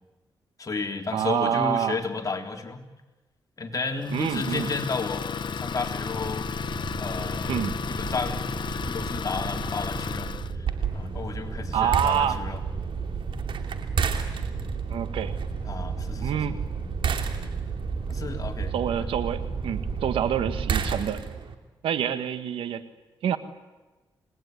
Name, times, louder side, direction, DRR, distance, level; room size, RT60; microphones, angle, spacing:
voice 1, 0.6-2.8 3.6-6.5 7.0-10.3 10.6-12.6 15.6-16.4 18.1-18.7 19.0-19.1, left 4 dB, 40° left, 2 dB, 4.0 m, -33 dB
voice 2, 1.1-2.0 4.1-4.7 7.5-7.8 11.7-12.4 14.9-15.3 16.2-16.6 18.7-21.2 21.8-22.8 23.2-23.4, right 9 dB, 90° right, 11 dB, 1.6 m, -27 dB
Idling, 4.0-10.5, left 6 dB, 60° left, 1.1 m, -33 dB
sound 1, 5.1-21.0, right 4 dB, 45° right, 5.2 m, -34 dB
sound 2, 10.7-21.5, right 6 dB, 75° right, 2.9 m, -33 dB
28.5 x 20.5 x 9.6 m, 1.2 s
cardioid pair, 60°, 9 cm